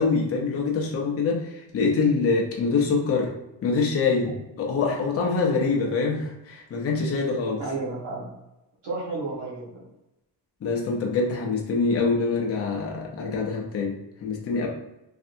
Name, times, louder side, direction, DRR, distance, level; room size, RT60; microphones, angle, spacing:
voice 1, 0.0-3.3 3.6-4.3 4.6-7.6 10.6-14.7, left 4 dB, 35° left, -1 dB, 0.5 m, -25 dB
voice 2, 7.6-8.2 8.8-9.8, right 3 dB, 70° right, -7 dB, 1.1 m, -32 dB
3.3 x 2.6 x 2.6 m, 0.93 s
wide cardioid pair, 175°, 44 cm